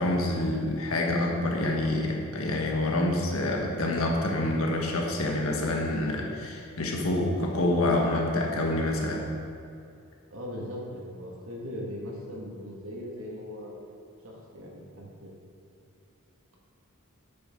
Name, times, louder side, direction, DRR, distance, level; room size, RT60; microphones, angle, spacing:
voice 1, 0.0-9.2, left 1 dB, 65° left, 0 dB, 1.4 m, -27 dB
voice 2, 10.3-13.7 14.2-15.3, equal, 65° right, -2 dB, 1.9 m, -39 dB
9.6 x 8.5 x 3.8 m, 2.5 s
head